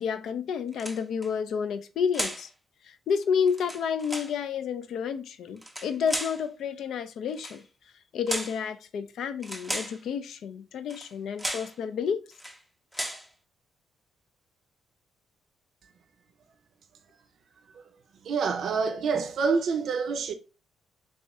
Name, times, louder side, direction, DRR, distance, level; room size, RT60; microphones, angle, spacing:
voice 1, 0.0-2.5 2.8-7.6 8.1-12.2, left 7 dB, 70° left, 0.4 m, -30 dB
sound 1, 0.7-1.3 2.1-2.5 3.5-4.4 5.6-6.4 7.3-7.6 8.3-8.6 9.4-10.0 10.9-11.1 11.4-11.8 12.3-12.6 12.9-13.3, equal, ahead, 0.5 m, -35 dB
voice 2, 18.2-20.3, right 5 dB, 65° right, 0.5 m, -27 dB
3.0 x 2.7 x 3.4 m
cardioid pair, 90°, 0 cm